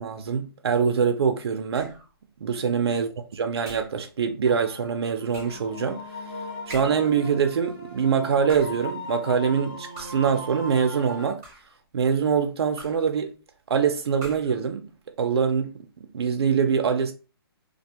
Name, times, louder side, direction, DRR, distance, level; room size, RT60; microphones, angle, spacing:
voice 1, 0.0-1.9 2.4-3.1 3.4-6.0 6.7-11.4 11.9-13.3 13.7-14.9 15.2-15.7 16.1-17.1, right 6 dB, 85° right, 0.4 m, -24 dB
sound 1, 1.7-2.1 3.6-4.0 5.3-5.7 6.7-7.2 8.3-8.9 10.0-10.4 11.2-11.8 12.8-13.2 14.2-14.6, right 1 dB, 10° right, 0.4 m, -44 dB
sound 2, 4.4-11.3, left 1 dB, 20° left, 0.7 m, -38 dB
2.4 x 2.2 x 2.8 m
hypercardioid pair, 180°, 13 cm